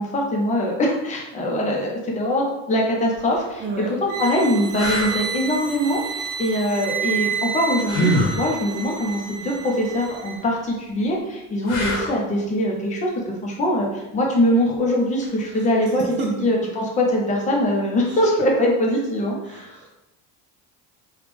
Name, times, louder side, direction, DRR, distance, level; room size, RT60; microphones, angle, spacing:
voice 1, 0.0-19.8, equal, 20° left, -2 dB, 0.6 m, -22 dB
sound 1, 3.1-3.3 4.0-4.1 4.7-5.2 7.8-8.4 11.6-12.3 15.2-15.4, equal, 70° left, 1.1 m, -23 dB
voice 2, 3.6-3.9 16.0-16.3 19.5-19.9, right 3 dB, 35° right, 0 dB, 0.4 m, -30 dB
sound 2, 4.1-10.4, right 7 dB, 80° right, 0.7 m, -30 dB
3.5 x 2.3 x 3.4 m, 0.95 s
cardioid pair, 160°, 34 cm